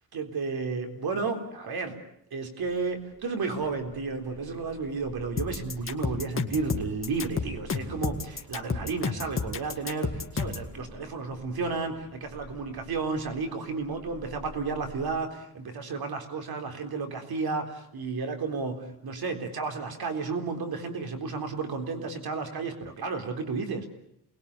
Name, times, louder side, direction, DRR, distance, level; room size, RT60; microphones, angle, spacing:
voice 1, 0.1-2.0 2.3-23.9, right 4 dB, 70° right, 6 dB, 3.9 m, -32 dB
sound 1, 2.6-15.2, left 1 dB, 5° right, 7.2 m, -51 dB
sound 2, 5.4-10.7, left 5 dB, 35° left, 2.1 m, -31 dB
29.0 x 21.0 x 8.4 m, 0.74 s
wide cardioid pair, 135°, 38 cm